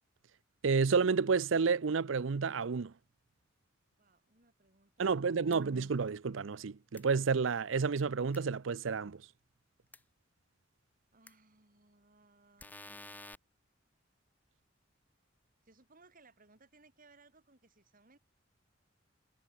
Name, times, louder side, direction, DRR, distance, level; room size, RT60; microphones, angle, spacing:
voice 1, 0.6-2.9 5.0-9.2, right 5 dB, 75° right, 0.6 m, -30 dB
voice 2, 4.0-5.7 11.1-13.2 15.6-18.2, right 3 dB, 45° right, 4.0 m, -64 dB
sound 1, 5.5-5.6 7.0-7.1 8.3-8.4 9.9-10.0 11.3-11.4 12.6-13.4, left 2 dB, 10° left, 0.5 m, -50 dB
head